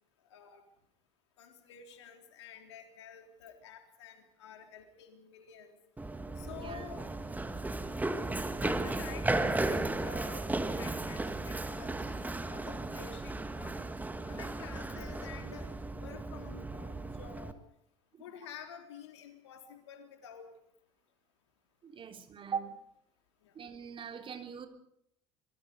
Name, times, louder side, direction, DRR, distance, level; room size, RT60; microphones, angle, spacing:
voice 1, 0.3-0.6 1.4-5.8 6.4-7.0 8.6-10.5 10.8-13.8 14.2-15.7 16.0-17.6 18.2-20.5 23.4-23.5, left 8 dB, 75° left, 5 dB, 3.7 m, -50 dB
Run, 6.0-17.5, right 2 dB, 10° right, 1.9 m, -35 dB
voice 2, 6.5-6.8 18.1-18.2 21.8-22.8 23.5-24.7, right 7 dB, 35° right, 5 dB, 3.3 m, -41 dB
26.0 x 22.5 x 5.3 m, 0.72 s
figure-of-eight pair, 65°, 15 cm